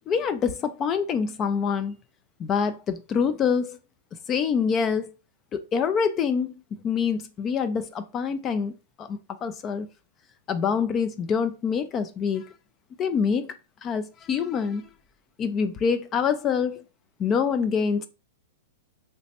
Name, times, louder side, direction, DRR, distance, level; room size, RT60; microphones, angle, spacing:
voice 1, 0.1-1.9 2.4-3.8 4.3-5.1 5.5-6.5 6.8-8.7 9.0-9.9 10.5-12.5 13.0-13.5 13.8-14.8 15.4-16.8 17.2-18.1, left 6 dB, 30° left, 0.3 m, -25 dB
3.2 x 2.9 x 2.8 m
hypercardioid pair, 110°, 0 cm